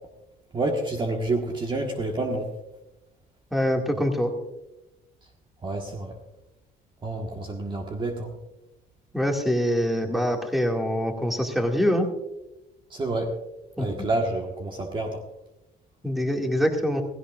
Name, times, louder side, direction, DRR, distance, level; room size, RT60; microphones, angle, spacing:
voice 1, 0.5-2.5 5.6-6.1 7.0-8.3 12.9-13.3 13.8-15.2, right 2 dB, 30° right, 2 dB, 1.5 m, -28 dB
voice 2, 3.5-4.3 9.1-12.1 13.8-14.1 16.0-17.0, equal, ahead, 2 dB, 2.1 m, -24 dB
16.0 x 16.0 x 2.5 m, 0.93 s
cardioid pair, 110°, 17 cm